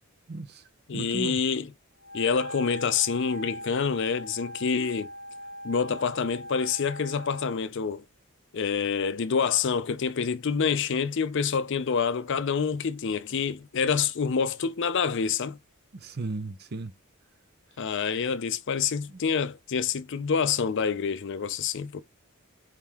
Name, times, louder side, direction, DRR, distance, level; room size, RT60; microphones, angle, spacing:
voice 1, 0.3-0.6 0.9-1.4 15.9-16.9 19.1-19.2, right 3 dB, 50° right, 0.6 m, -35 dB
voice 2, 0.9-1.7 2.1-5.1 5.6-8.0 8.5-15.6 17.8-22.0, left 6 dB, 55° left, 0.5 m, -27 dB
Wind instrument woodwind instrument, 2.0-7.6, equal, 10° left, 1.9 m, -41 dB
4.5 x 3.7 x 2.9 m
head